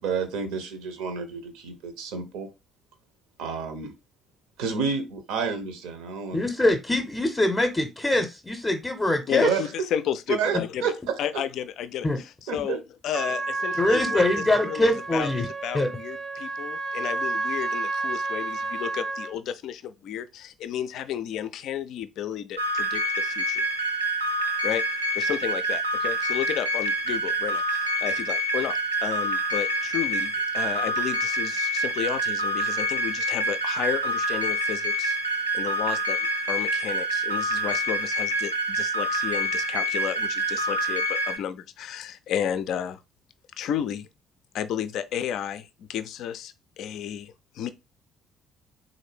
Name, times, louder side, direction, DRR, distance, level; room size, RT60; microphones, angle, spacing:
voice 1, 0.0-2.5 3.4-3.9 4.6-6.4 9.3-9.6 10.4-11.2 12.5-12.8, right 6 dB, 65° right, 0.7 m, -29 dB
voice 2, 6.3-9.5 12.0-12.2 13.7-15.5 15.7-15.9, left 1 dB, 20° left, 0.7 m, -23 dB
voice 3, 9.3-10.9 11.2-12.1 12.5-12.8 13.0-14.2 14.6-15.3 15.6-23.7 24.6-24.8 25.1-35.2 35.5-36.2 36.5-43.0 43.6-44.1 44.5-47.7, left 9 dB, 55° left, 0.4 m, -32 dB
Trumpet, 13.1-19.3, right 3 dB, 30° right, 0.5 m, -31 dB
sound 1, 22.6-41.4, right 1 dB, 85° right, 0.4 m, -27 dB
3.9 x 2.5 x 3.3 m
figure-of-eight pair, 50°, 0 cm